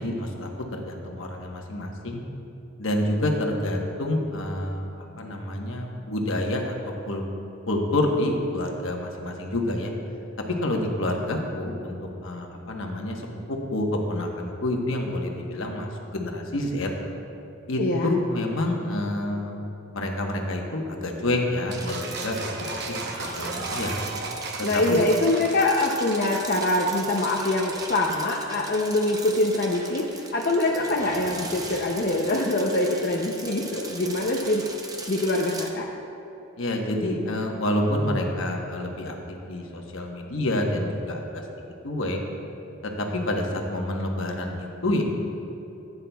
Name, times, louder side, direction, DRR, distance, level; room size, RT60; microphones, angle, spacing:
voice 1, 0.0-2.2 2.8-4.9 5.2-6.7 7.0-7.2 7.7-9.9 10.5-11.9 12.2-16.9 17.7-19.5 19.9-24.0 24.6-25.0 36.6-39.2 39.5-41.4 41.8-42.2 42.8-45.0, left 1 dB, 65° left, 1 dB, 1.1 m, -28 dB
voice 2, 17.8-18.1 24.6-34.7 35.1-35.9, left 2 dB, 45° left, -1 dB, 0.6 m, -24 dB
sound 1, 21.7-35.7, right 3 dB, 15° right, 0.6 m, -39 dB
sound 2, 21.7-27.9, right 3 dB, 50° right, 0.8 m, -35 dB
15.5 x 9.5 x 2.3 m, 3.0 s
head